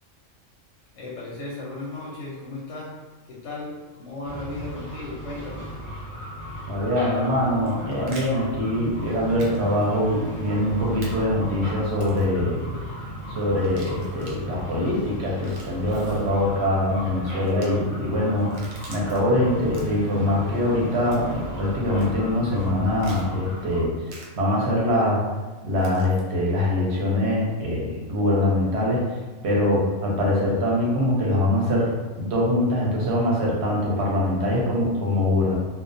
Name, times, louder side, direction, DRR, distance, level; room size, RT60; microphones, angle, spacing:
voice 1, 0.9-3.0 3.3-5.7, left 2 dB, 65° left, -5 dB, 0.8 m, -36 dB
sound 1, 4.2-23.8, equal, 15° right, 0.7 m, -36 dB
voice 2, 6.7-12.6 12.9-13.0 13.3-25.2 25.6-29.2 29.4-35.5, left 1 dB, 60° right, -4 dB, 0.9 m, -23 dB
sound 2, 7.5-8.3 9.4-9.6 9.8-9.9 11.0-11.1 11.9-12.3 13.5-14.4 15.3-16.2 17.4-17.7 18.4-19.2 19.6-20.1 21.1-21.4 22.0-22.1 23.0-23.3 24.1-24.3 25.8-26.2, right 2 dB, 85° right, 1.0 m, -45 dB
2.3 x 2.1 x 2.5 m, 1.3 s
omnidirectional pair, 1.4 m